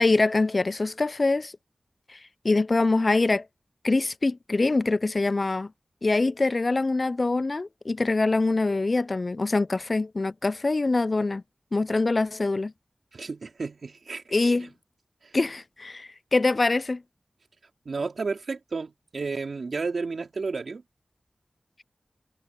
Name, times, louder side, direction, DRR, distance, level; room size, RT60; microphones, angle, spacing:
voice 1, 0.0-1.5 2.4-3.4 3.8-5.7 6.0-11.4 11.7-12.7 14.3-14.7 15.3-17.0, left 3 dB, 50° left, 0.3 m, -24 dB
voice 2, 13.1-14.7 15.2-15.3 17.8-20.8, right 4 dB, 80° right, 3.2 m, -32 dB
wide cardioid pair, 55°, 0 cm